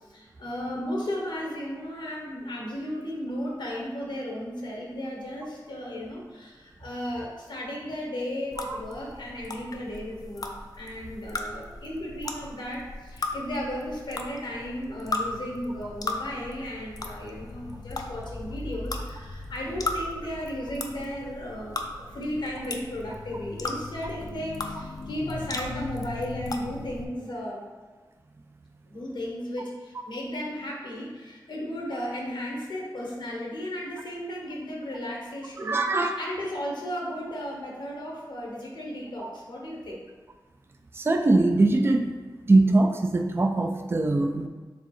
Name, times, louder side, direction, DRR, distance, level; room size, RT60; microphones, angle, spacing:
voice 1, 0.1-27.7 28.9-40.0, equal, 80° left, -2 dB, 0.9 m, -35 dB
sound 1, 8.5-27.0, left 2 dB, 50° left, 0.4 m, -37 dB
voice 2, 35.6-36.2 40.9-42.1 42.5-44.5, right 2 dB, 30° right, 4 dB, 0.3 m, -22 dB
4.1 x 3.2 x 3.1 m, 1.4 s
cardioid pair, 50°, 8 cm